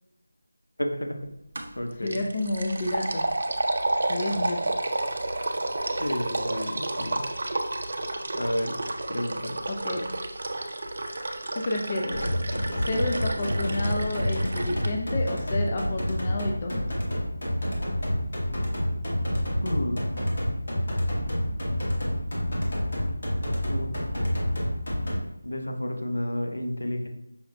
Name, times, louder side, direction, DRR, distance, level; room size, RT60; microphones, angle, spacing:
voice 1, 0.8-1.2 1.8-2.2 4.3-4.4 6.0-7.3 8.3-8.7 9.1-9.6 19.6-20.0 23.7-23.9 25.4-27.1, left 1 dB, 85° left, 4 dB, 0.6 m, -31 dB
sound 1, 1.6-1.8 2.1-14.9, right 2 dB, 55° right, 0.4 m, -31 dB
voice 2, 2.0-3.2 4.1-4.6 9.7-10.1 11.5-12.3 12.8-16.8, left 2 dB, 30° left, 1 dB, 0.4 m, -30 dB
sound 2, 12.1-25.2, equal, 60° left, 1.1 m, -28 dB
5.5 x 2.1 x 2.6 m, 0.82 s
figure-of-eight pair, 165°, 0 cm